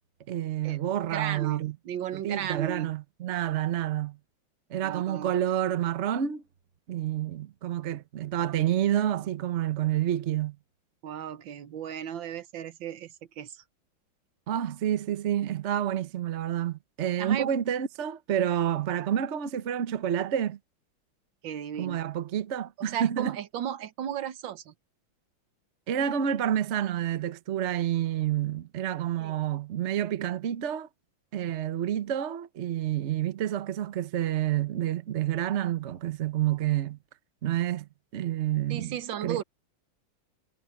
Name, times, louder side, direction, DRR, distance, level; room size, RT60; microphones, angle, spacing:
voice 1, 0.3-1.8 2.1-4.2 4.7-6.4 6.9-10.6 14.5-20.6 21.8-23.4 25.9-30.9 31.3-37.0 37.4-39.4, right 11 dB, 45° right, 1.0 m, -29 dB
voice 2, 1.1-2.9 4.8-5.3 11.0-13.6 17.2-17.5 21.4-22.0 22.8-24.7 29.2-29.4 38.7-39.4, right 10 dB, 70° right, 1.6 m, -35 dB
omnidirectional pair, 2.2 m